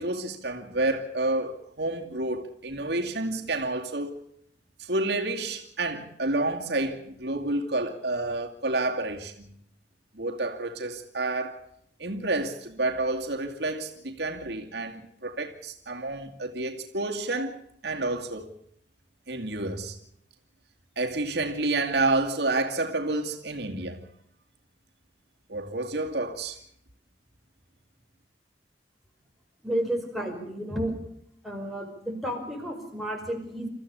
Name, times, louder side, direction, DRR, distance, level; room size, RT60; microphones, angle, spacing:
voice 1, 0.0-4.1 4.8-9.5 10.1-11.6 12.0-17.6 17.8-18.5 19.3-20.0 21.0-24.0 25.5-26.6, right 2 dB, 65° right, 2.4 m, -29 dB
voice 2, 29.6-30.9 31.4-33.7, right 1 dB, ahead, 5.1 m, -31 dB
28.5 x 15.0 x 7.0 m
head